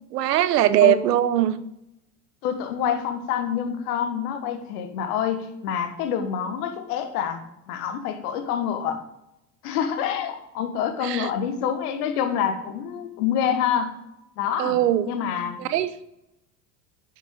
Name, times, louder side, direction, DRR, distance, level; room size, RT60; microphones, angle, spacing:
voice 1, 0.1-1.6 11.0-11.3 14.6-15.1 15.6-15.9, right 12 dB, 80° right, 14 dB, 0.8 m, -20 dB
voice 2, 2.4-9.0 9.6-13.9 14.4-14.8 15.0-15.6, left 8 dB, 70° left, 7 dB, 1.4 m, -27 dB
9.2 x 5.5 x 5.2 m, 0.85 s
hypercardioid pair, 80°, 47 cm